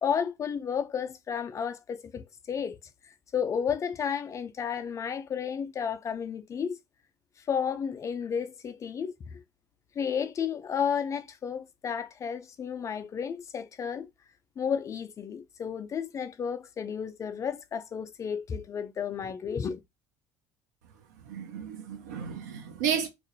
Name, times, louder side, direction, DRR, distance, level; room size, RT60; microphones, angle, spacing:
voice 1, 0.0-2.8 3.3-6.8 7.4-9.4 10.0-14.1 14.6-19.8, left 7 dB, 35° left, 0.3 m, -32 dB
voice 2, 21.2-23.1, right 7 dB, 75° right, 0.6 m, -32 dB
2.3 x 2.0 x 2.7 m
hypercardioid pair, 65°, 9 cm